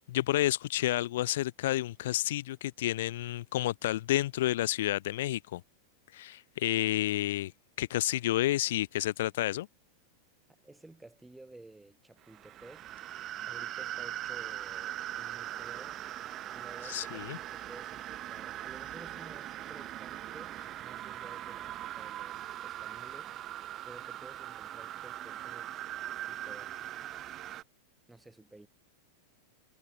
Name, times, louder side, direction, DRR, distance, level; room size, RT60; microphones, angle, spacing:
voice 1, 0.1-5.6 6.1-7.5 7.8-9.7 16.8-17.4, left 15 dB, 55° left, 0.8 m, -30 dB
voice 2, 10.6-12.9 13.4-16.0 16.5-23.4 23.8-25.9 26.1-26.9 28.1-28.7, right 2 dB, 5° right, 4.3 m, -53 dB
sound 1, 12.2-27.6, right 13 dB, 30° right, 0.8 m, -41 dB
figure-of-eight pair, 90°, 0 cm